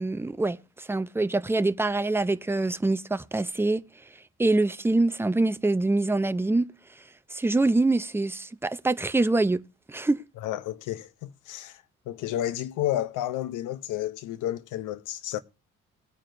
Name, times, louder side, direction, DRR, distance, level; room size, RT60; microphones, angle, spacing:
voice 1, 0.0-3.8 4.4-6.6 7.3-9.6 9.9-10.2, right 2 dB, 10° right, 0.5 m, -25 dB
voice 2, 10.4-15.4, left 13 dB, 85° left, 0.7 m, -31 dB
20.5 x 9.0 x 2.6 m
cardioid pair, 90°, 30 cm